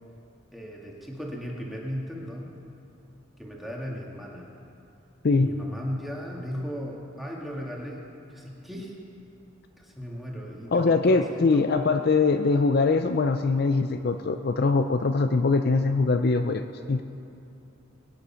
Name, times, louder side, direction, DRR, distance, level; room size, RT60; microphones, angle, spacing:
voice 1, 0.5-2.5 3.4-4.5 5.3-8.0 8.3-8.9 9.8-11.7, equal, ahead, -3 dB, 2.0 m, -36 dB
voice 2, 10.7-17.0, left 3 dB, 50° left, 7 dB, 0.5 m, -22 dB
23.0 x 9.7 x 5.7 m, 2.8 s
head